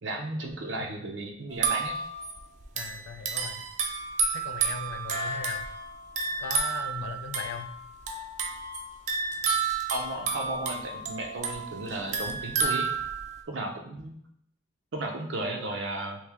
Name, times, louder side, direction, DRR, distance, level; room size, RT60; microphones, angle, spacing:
voice 1, 0.0-2.0 9.9-12.9 13.5-14.1 14.9-16.2, right 2 dB, 80° right, 3 dB, 0.6 m, -34 dB
sound 1, 1.5-13.4, right 4 dB, 40° right, 0.4 m, -31 dB
voice 2, 2.7-3.6 4.3-5.7 6.4-7.7, left 5 dB, 75° left, 8 dB, 0.3 m, -39 dB
3.1 x 2.7 x 3.4 m, 0.70 s
head